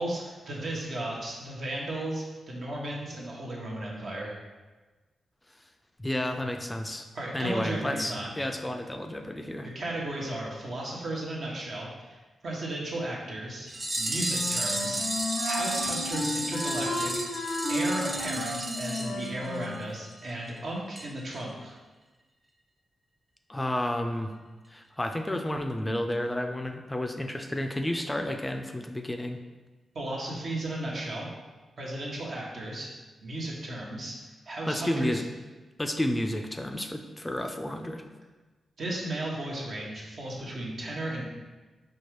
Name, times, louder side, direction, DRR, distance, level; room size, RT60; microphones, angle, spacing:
voice 1, 0.0-4.4 7.1-8.3 9.7-13.7 14.0-17.3 17.7-21.7 29.9-31.3 31.8-32.9 33.2-34.2 34.5-35.2 38.8-41.2, right 1 dB, 65° right, -3 dB, 0.9 m, -35 dB
voice 2, 6.0-7.1 7.3-9.7 23.5-24.3 24.7-29.4 34.7-35.2 35.8-38.0, left 1 dB, 15° left, 5 dB, 0.3 m, -31 dB
sound 1, 13.7-19.8 20.1-20.2 20.5-20.6 21.0-21.1 21.4-21.5, right 1 dB, 35° right, 0.6 m, -33 dB
Wind instrument woodwind instrument, 14.2-19.9, left 1 dB, 85° left, 0.5 m, -33 dB
4.4 x 2.3 x 3.1 m, 1.2 s
supercardioid pair, 50°, 0 cm